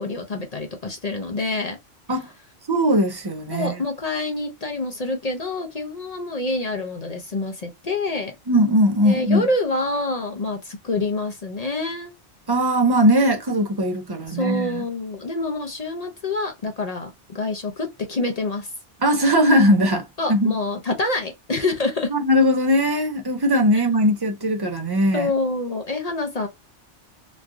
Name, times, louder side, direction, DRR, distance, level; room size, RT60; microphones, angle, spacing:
voice 1, 0.0-1.8 2.1-2.2 3.5-8.4 9.0-12.1 14.3-18.7 20.2-22.1 23.7-23.8 25.1-26.5, left 2 dB, 45° left, 0.6 m, -27 dB
voice 2, 2.7-3.8 8.5-9.5 12.5-14.8 19.0-20.5 22.1-25.3, equal, 35° right, 0.4 m, -19 dB
3.1 x 2.4 x 2.4 m
omnidirectional pair, 1.2 m